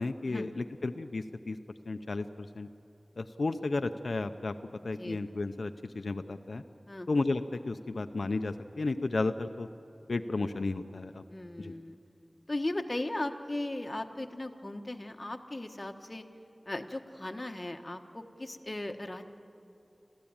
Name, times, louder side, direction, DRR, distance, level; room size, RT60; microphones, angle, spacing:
voice 1, 0.0-1.6 1.9-2.7 3.2-4.5 4.8-6.6 7.1-9.7 10.1-11.2 11.6-11.7, left 3 dB, 85° left, 8 dB, 0.6 m, -33 dB
voice 2, 11.3-12.0 12.5-16.2 16.7-19.2, left 1 dB, 35° left, 5 dB, 1.3 m, -37 dB
28.0 x 14.0 x 8.8 m, 2.8 s
wide cardioid pair, 65°, 0 cm